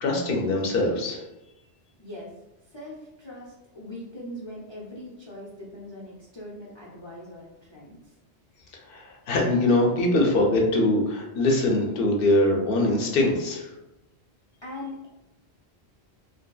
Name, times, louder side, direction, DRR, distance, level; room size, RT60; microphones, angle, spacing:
voice 1, 0.0-1.2 8.9-13.7, left 1 dB, 65° left, 0 dB, 0.7 m, -23 dB
voice 2, 2.0-2.3 2.6-8.1 14.6-15.1, left 1 dB, 40° left, -6 dB, 0.4 m, -41 dB
2.6 x 2.5 x 2.3 m, 0.95 s
omnidirectional pair, 1.1 m